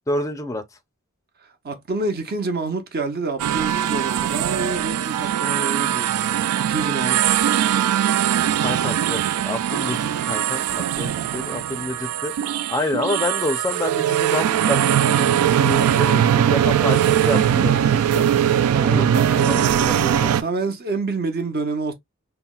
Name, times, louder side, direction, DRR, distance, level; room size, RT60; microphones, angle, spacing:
voice 1, 0.1-0.6 8.6-12.3 12.7-18.3 18.9-19.1 19.5-20.3, left 2 dB, 15° left, 0.4 m, -28 dB
voice 2, 1.4-7.2 10.9-11.6 18.7-21.9, right 3 dB, 45° right, 0.6 m, -28 dB
sound 1, 3.4-20.4, right 10 dB, 90° right, 0.3 m, -20 dB
5.5 x 2.1 x 2.3 m
head